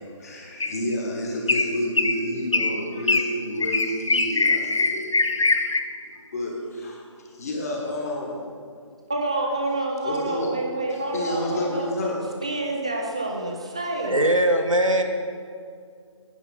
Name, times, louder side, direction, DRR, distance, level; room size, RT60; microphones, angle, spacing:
voice 1, 0.0-5.4 6.0-8.4 10.0-10.5 11.1-12.3, left 1 dB, 30° left, 0 dB, 1.4 m, -30 dB
sound 1, 0.6-0.9 1.5-1.7 2.0-2.2 2.5-2.7 3.1-3.3 3.6-5.8, left 3 dB, 70° left, 0.6 m, -22 dB
voice 2, 9.1-11.9 12.4-14.3, right 2 dB, 10° right, 1 dB, 0.3 m, -28 dB
voice 3, 14.0-15.0, right 1 dB, 85° right, 4 dB, 1.1 m, -20 dB
9.9 x 5.5 x 5.4 m, 2.2 s
figure-of-eight pair, 150°, 16 cm